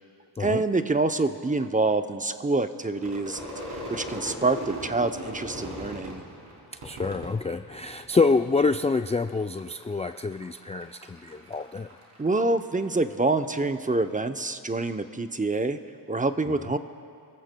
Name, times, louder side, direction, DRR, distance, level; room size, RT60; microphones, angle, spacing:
voice 1, 0.4-3.4 3.7-6.2 12.2-15.8 16.1-16.8, right 3 dB, 20° right, 8 dB, 0.6 m, -26 dB
Crowd / Fireworks, 3.0-8.3 8.6-9.3 9.6-13.1, equal, 70° right, 3.3 m, -39 dB
voice 2, 6.8-11.9, left 4 dB, 15° left, 7 dB, 0.3 m, -26 dB
28.5 x 15.0 x 2.2 m, 2.4 s
cardioid pair, 65°, 41 cm